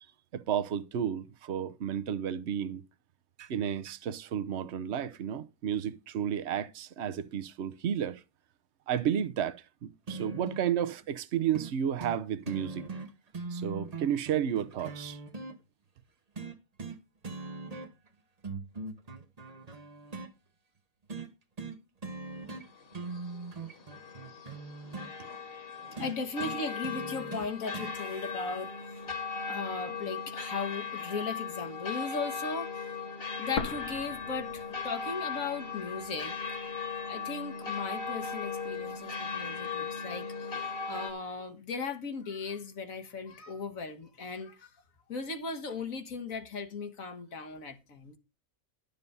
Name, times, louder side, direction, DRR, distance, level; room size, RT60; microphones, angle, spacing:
voice 1, 0.3-2.8 3.4-8.2 8.9-12.9 13.5-15.2, right 9 dB, 55° right, 1.0 m, -32 dB
sound 1, 10.1-10.7 11.5-11.7 12.0-12.2 12.5-15.5 16.4-17.0 17.2-18.1 18.4-20.3 21.1-21.3 21.6-21.8 22.0-22.7 22.9-25.1 26.0-27.9 29.0-29.1, right 3 dB, 30° right, 1.0 m, -40 dB
sound 2, 22.5-41.1, left 5 dB, 40° left, 1.8 m, -38 dB
voice 2, 26.0-29.0 29.5-32.9 33.4-36.4 37.1-44.7 45.1-48.2, left 4 dB, 65° left, 1.7 m, -37 dB
sound 3, 33.6-35.5 35.8-35.9 36.6-37.6, left 5 dB, 85° left, 1.7 m, -39 dB
11.5 x 6.9 x 5.4 m
omnidirectional pair, 1.5 m